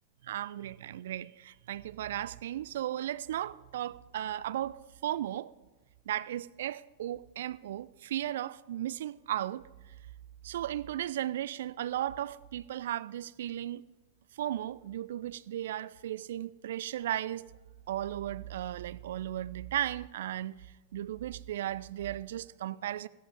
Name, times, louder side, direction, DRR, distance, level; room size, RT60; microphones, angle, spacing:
voice 1, 0.2-5.5 6.1-9.6 10.4-13.8 14.4-17.5 17.9-20.6 20.9-23.1, right 12 dB, 60° right, 0.3 m, -35 dB
14.5 x 14.5 x 3.6 m
figure-of-eight pair, 90°, 0 cm